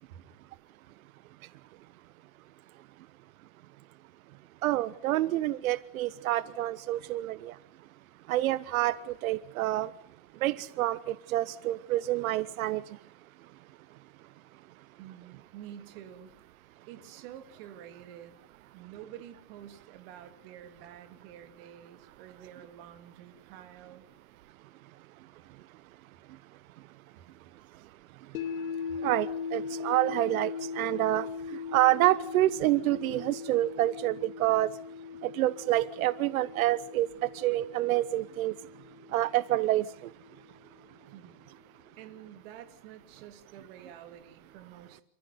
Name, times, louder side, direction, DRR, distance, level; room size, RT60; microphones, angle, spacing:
voice 1, 4.6-7.5 8.3-9.0 9.2-9.9 10.4-12.8 29.0-31.3 31.7-34.7 35.2-38.5 39.1-39.8, right 15 dB, 90° right, 17 dB, 0.9 m, -27 dB
voice 2, 15.0-16.3 16.9-18.4 18.7-24.0 41.1-45.0, right 10 dB, 45° right, 8 dB, 2.7 m, -49 dB
sound 1, 28.3-40.5, left 5 dB, 80° left, 2.7 m, -40 dB
28.5 x 14.5 x 9.4 m, 0.68 s
supercardioid pair, 180°, 41 cm